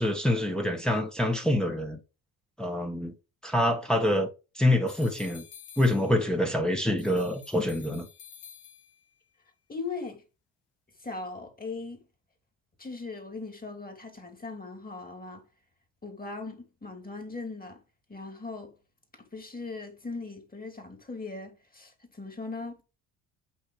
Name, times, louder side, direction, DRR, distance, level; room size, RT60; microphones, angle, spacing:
voice 1, 0.0-2.0 2.6-3.1 3.4-4.3 4.5-5.5 5.8-8.1, left 1 dB, ahead, 1.5 m, -26 dB
sound 1, 4.9-6.5 7.0-9.2, left 8 dB, 65° left, 1.9 m, -50 dB
voice 2, 9.7-10.2 11.0-12.1 12.8-15.4 16.0-17.8 18.1-18.8 19.1-22.8, left 3 dB, 20° left, 2.6 m, -39 dB
8.6 x 3.1 x 4.7 m
supercardioid pair, 65°, 43 cm